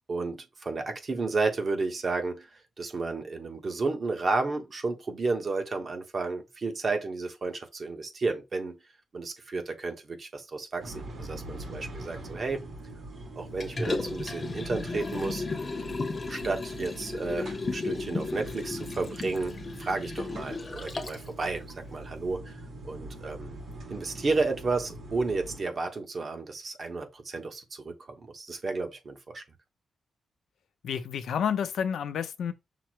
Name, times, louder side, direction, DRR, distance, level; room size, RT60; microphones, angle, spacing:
voice 1, 0.1-2.5 2.8-8.8 9.1-12.7 13.4-15.5 16.3-23.6 23.9-29.4, right 3 dB, 35° right, 0.9 m, -32 dB
sound 1, 10.8-25.6, right 1 dB, 55° right, 1.7 m, -43 dB
Liquid, 13.6-21.3 21.7-21.8, left 3 dB, 30° left, 0.7 m, -34 dB
voice 2, 30.8-32.5, left 8 dB, 85° left, 0.6 m, -30 dB
5.8 x 2.0 x 4.5 m
wide cardioid pair, 165°, 0 cm